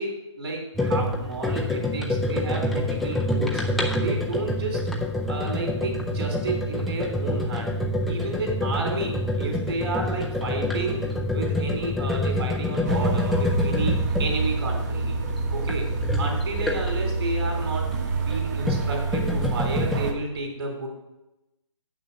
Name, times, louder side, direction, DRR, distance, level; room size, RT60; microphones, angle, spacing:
voice 1, 0.0-3.6 4.0-4.8 5.3-7.7 8.1-11.0 11.3-15.2 15.5-15.9 16.2-20.9, right 2 dB, 50° right, -2 dB, 2.9 m, -31 dB
sound 1, 0.7-17.1 18.2-20.1, left 1 dB, ahead, 0.4 m, -27 dB
sound 2, 12.8-20.1, right 3 dB, 35° right, 1.1 m, -27 dB
7.7 x 6.1 x 7.0 m, 0.96 s
hypercardioid pair, 155°, 16 cm